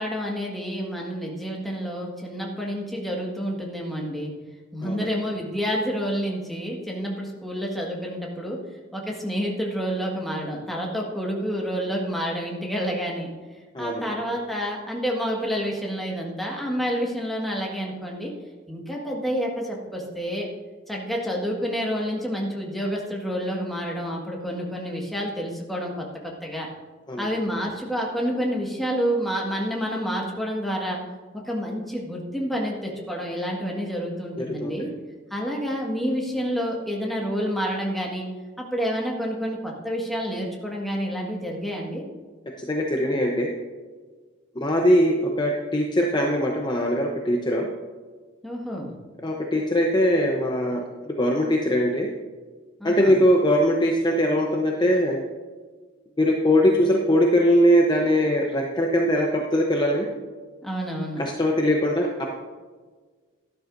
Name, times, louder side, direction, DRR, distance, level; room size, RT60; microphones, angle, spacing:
voice 1, 0.0-4.3 4.7-8.6 8.9-13.3 13.8-18.3 18.7-20.5 20.9-26.7 27.2-31.0 31.5-34.9 35.3-38.3 38.6-42.0 48.4-49.0 52.8-53.2 60.6-61.2, equal, ahead, -2 dB, 1.7 m, -29 dB
voice 2, 34.4-34.7 42.6-43.5 44.6-47.7 49.2-50.8 51.2-52.1 52.8-55.2 56.2-60.1 61.2-62.3, equal, 20° left, 0 dB, 0.8 m, -21 dB
12.5 x 12.0 x 2.7 m, 1.4 s
head